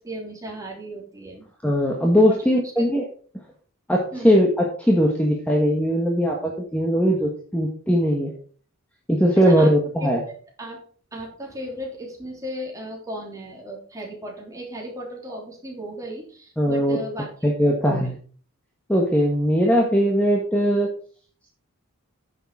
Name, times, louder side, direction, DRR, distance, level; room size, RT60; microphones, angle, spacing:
voice 1, 0.0-1.5 2.3-2.7 4.1-4.4 9.4-9.7 10.0-10.1 10.6-10.8 11.1-18.1, equal, 15° right, -1 dB, 3.2 m, -36 dB
voice 2, 1.6-3.1 3.9-8.3 9.1-10.2 16.6-17.0 17.4-18.1 18.9-20.9, equal, 5° left, -1 dB, 1.4 m, -20 dB
10.0 x 6.8 x 5.0 m, 0.43 s
head